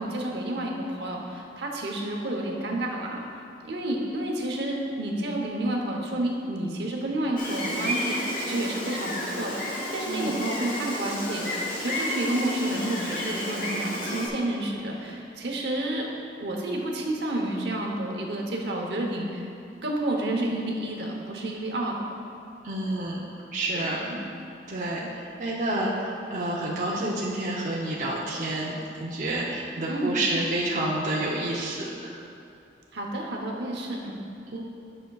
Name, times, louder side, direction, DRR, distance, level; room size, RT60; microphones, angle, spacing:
voice 1, 0.0-3.1 3.6-11.5 11.8-16.1 16.4-19.5 19.8-22.1 23.7-24.2 29.9-30.2 32.9-34.2, right 1 dB, 70° right, -1 dB, 0.9 m, -30 dB
Gull seagull, 7.4-14.3, left 1 dB, 50° left, 1.1 m, -31 dB
voice 2, 10.0-10.4 22.6-23.2 23.5-24.0 24.7-32.2 34.5-34.6, right 1 dB, 45° right, -5 dB, 0.6 m, -29 dB
10.5 x 6.3 x 2.3 m, 2.6 s
head